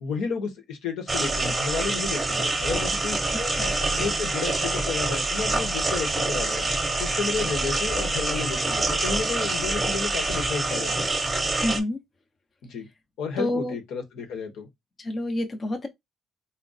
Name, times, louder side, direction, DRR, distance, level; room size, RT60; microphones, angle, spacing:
voice 1, 0.0-3.2 3.6-6.7 7.0-11.1 12.6-12.9 13.2-14.7, left 5 dB, 85° left, 1.0 m, -32 dB
sound 1, 1.1-11.8, right 2 dB, 20° right, 0.9 m, -26 dB
voice 2, 3.2-3.8 11.6-12.0 13.4-13.8 15.0-15.9, left 1 dB, 35° left, 0.7 m, -29 dB
3.5 x 2.1 x 4.0 m
cardioid pair, 90°, 0 cm